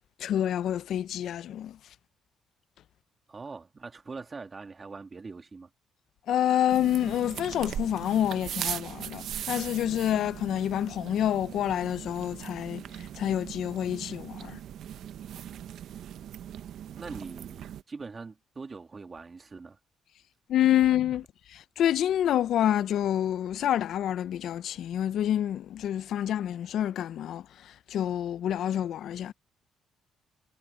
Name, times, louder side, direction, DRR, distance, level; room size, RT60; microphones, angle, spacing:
voice 1, 0.2-1.8 6.3-14.6 20.5-29.3, left 11 dB, 75° left, 0.5 m, -28 dB
voice 2, 3.3-5.7 16.9-19.8, right 4 dB, 30° right, 2.7 m, -42 dB
sound 1, 6.7-17.8, right 10 dB, 75° right, 0.9 m, -39 dB
cardioid pair, 90°, 0 cm